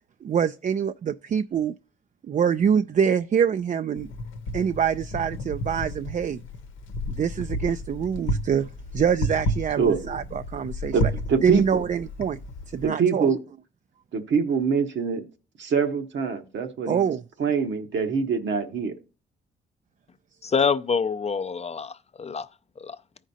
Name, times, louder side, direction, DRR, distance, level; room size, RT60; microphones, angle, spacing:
voice 1, 0.2-1.7 2.2-4.1 4.5-6.4 7.1-11.0 11.4-12.4 12.7-13.4 16.9-17.2, right 7 dB, 40° right, 0.4 m, -25 dB
Wind, 4.0-12.9, equal, 85° left, 0.8 m, -32 dB
voice 2, 10.9-11.8 12.8-13.4 14.1-15.2 15.6-17.0 17.4-18.9, right 6 dB, 70° right, 1.0 m, -24 dB
voice 3, 20.4-22.5 22.8-23.0, left 5 dB, 35° left, 0.4 m, -26 dB
14.0 x 5.1 x 2.7 m
supercardioid pair, 50°, 20 cm